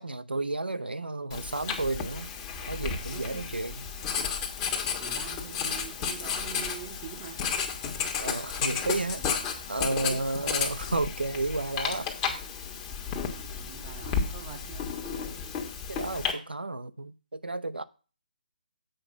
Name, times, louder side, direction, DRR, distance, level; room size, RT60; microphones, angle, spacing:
voice 1, 0.0-2.3 2.7-3.8 8.2-9.2 9.7-12.1 15.9-17.8, right 2 dB, 85° right, 0.7 m, -32 dB
Writing, 1.3-16.3, left 6 dB, 20° left, 1.2 m, -33 dB
voice 2, 3.1-3.5 4.6-7.5 9.2-9.3 10.0-10.3 13.6-14.9, right 8 dB, 20° right, 0.9 m, -44 dB
7.7 x 4.9 x 6.1 m
figure-of-eight pair, 145°, 5 cm